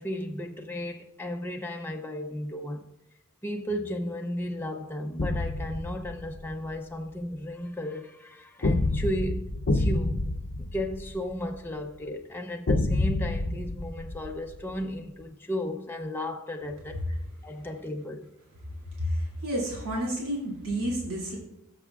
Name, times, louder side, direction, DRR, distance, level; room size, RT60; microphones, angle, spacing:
voice 1, 0.0-2.9 3.4-10.3 10.6-17.0 17.4-18.3, left 1 dB, 10° left, 0.6 m, -34 dB
sound 1, 5.2-6.6 8.6-11.6 12.7-14.8, left 2 dB, 50° left, 0.7 m, -28 dB
voice 2, 19.0-21.4, equal, 70° right, 2.7 m, -30 dB
17.0 x 7.0 x 2.4 m
head